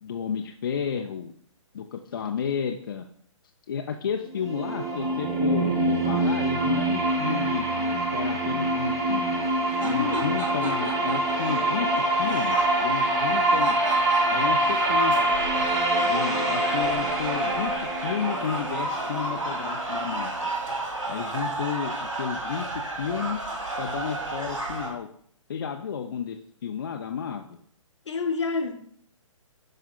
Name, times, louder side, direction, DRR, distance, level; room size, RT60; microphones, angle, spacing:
voice 1, 0.0-1.3 1.7-3.0 3.7-9.4 9.8-13.8 14.3-15.1 16.0-20.4 21.1-23.4 23.8-25.1 25.5-27.4, left 7 dB, 40° left, 3 dB, 0.4 m, -32 dB
sound 1, 4.3-20.2, right 1 dB, 15° right, 0.6 m, -25 dB
sound 2, 9.4-24.9, right 2 dB, 70° right, 1.9 m, -33 dB
voice 2, 9.9-10.3 28.1-28.7, left 4 dB, 60° left, 7 dB, 0.8 m, -28 dB
11.0 x 4.2 x 2.2 m, 0.63 s
figure-of-eight pair, 130°, 17 cm